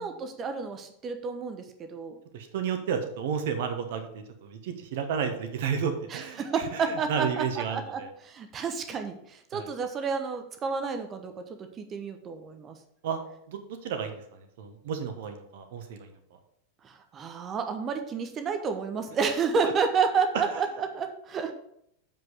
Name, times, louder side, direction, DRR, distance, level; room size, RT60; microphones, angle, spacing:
voice 1, 0.0-2.2 6.1-11.3 11.6-12.7 16.8-21.5, right 5 dB, 25° right, 7 dB, 1.0 m, -30 dB
voice 2, 2.3-6.4 6.7-6.8 7.1-7.8 9.5-9.7 13.0-13.2 13.5-14.2 14.6-16.1, right 7 dB, 55° right, 7 dB, 1.2 m, -32 dB
7.5 x 5.4 x 5.6 m, 0.72 s
figure-of-eight pair, 90°, 0 cm